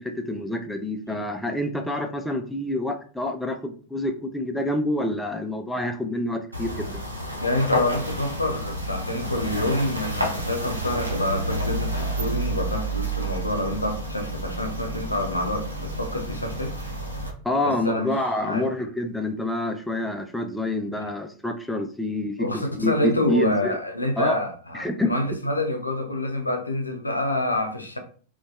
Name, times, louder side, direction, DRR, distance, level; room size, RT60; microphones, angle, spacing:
voice 1, 0.0-7.0 17.4-22.5 22.7-23.8 24.2-24.4 24.7-25.1, left 1 dB, 5° left, 0.3 m, -27 dB
sound 1, 6.5-17.3, right 1 dB, 80° right, 0.6 m, -30 dB
voice 2, 7.4-16.7 17.6-18.1 18.5-18.7 22.4-28.0, left 1 dB, 80° left, 0.4 m, -27 dB
2.6 x 2.2 x 2.3 m
figure-of-eight pair, 90°, 0 cm